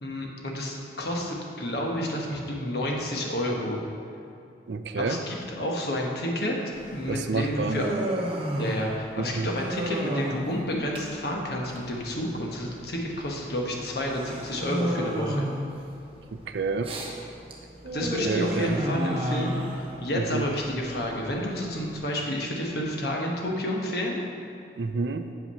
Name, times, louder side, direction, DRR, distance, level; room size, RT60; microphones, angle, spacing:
voice 1, 0.0-3.8 5.0-6.5 6.9-7.9 8.6-15.5 17.9-24.2, left 1 dB, 55° left, -1 dB, 1.2 m, -30 dB
voice 2, 4.7-5.2 7.1-7.8 9.2-9.5 16.3-16.9 18.2-18.8 20.1-20.5 24.8-25.3, right 4 dB, 70° right, 9 dB, 0.4 m, -29 dB
Human voice, 6.7-22.0, equal, 30° right, 0.9 m, -33 dB
7.4 x 5.8 x 5.5 m, 2.6 s
head